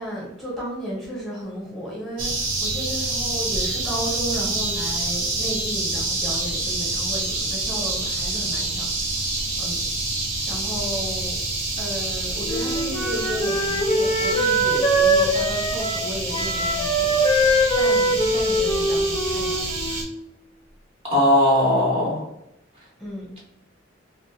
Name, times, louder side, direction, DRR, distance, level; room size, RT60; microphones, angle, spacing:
voice 1, 0.0-8.9 9.1-9.2 9.6-9.8 10.4-11.4 11.8-19.6 19.9-20.0 23.0-23.3, right 1 dB, ahead, -7 dB, 0.9 m, -33 dB
sound 1, 2.2-20.0, right 2 dB, 70° right, 0.7 m, -27 dB
Wind instrument woodwind instrument, 12.4-20.2, right 1 dB, 20° left, 0.4 m, -22 dB
voice 2, 21.0-22.3, left 1 dB, 30° right, -5 dB, 0.8 m, -18 dB
2.4 x 2.1 x 2.7 m, 0.83 s
head